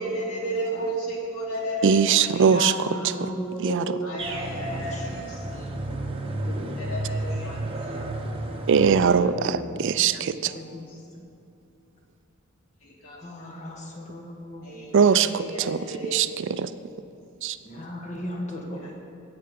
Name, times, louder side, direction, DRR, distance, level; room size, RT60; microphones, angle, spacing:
voice 1, 0.0-3.1 4.0-5.7 6.8-8.5 10.3-10.6 10.9-11.0 12.8-13.5 14.6-16.2 18.3-18.4 18.8-18.9, right 1 dB, 85° left, -3 dB, 2.7 m, -34 dB
voice 2, 1.8-2.7 3.2-3.3 3.6-4.0 8.7-10.5 14.9-16.7 17.4-17.6, right 6 dB, 60° right, 13 dB, 0.4 m, -21 dB
voice 3, 2.4-4.2 4.5-5.0 5.3-6.0 6.4-6.7 9.2-9.9 10.5-10.9 13.1-14.8 15.3-15.5 17.6-18.9, equal, 35° left, 0 dB, 1.4 m, -36 dB
sound 1, 4.2-9.2, right 1 dB, 25° right, 0.9 m, -32 dB
16.5 x 6.8 x 5.2 m, 2.7 s
head